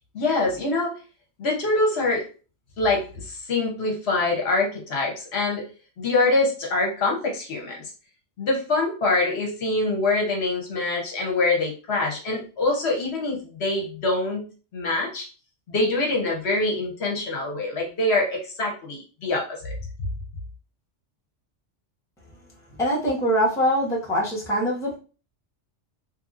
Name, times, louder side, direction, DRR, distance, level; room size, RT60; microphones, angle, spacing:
voice 1, 0.1-0.9 1.4-2.3 2.8-5.6 6.0-7.8 8.4-14.4 14.7-15.3 15.7-19.7, left 2 dB, 65° left, 0 dB, 1.0 m, -24 dB
voice 2, 22.8-25.0, equal, 5° left, -6 dB, 0.9 m, -23 dB
2.9 x 2.6 x 2.4 m, 0.35 s
omnidirectional pair, 1.2 m